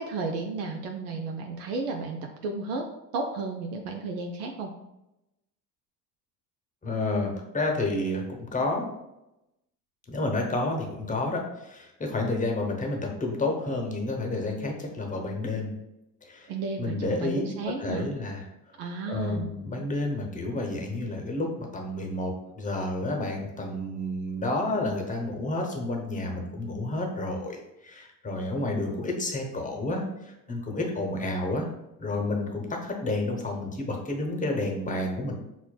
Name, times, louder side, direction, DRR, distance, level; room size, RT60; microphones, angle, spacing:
voice 1, 0.0-2.9 3.1-4.7 16.5-18.1 18.8-19.5, right 3 dB, 70° right, 3 dB, 0.6 m, -33 dB
voice 2, 6.8-8.9 10.1-15.7 16.3-16.5 16.8-17.4 17.8-18.4 19.1-31.7 32.0-35.3, left 2 dB, 15° left, 1 dB, 0.8 m, -30 dB
5.7 x 2.1 x 2.2 m, 0.91 s
hypercardioid pair, 65°, 48 cm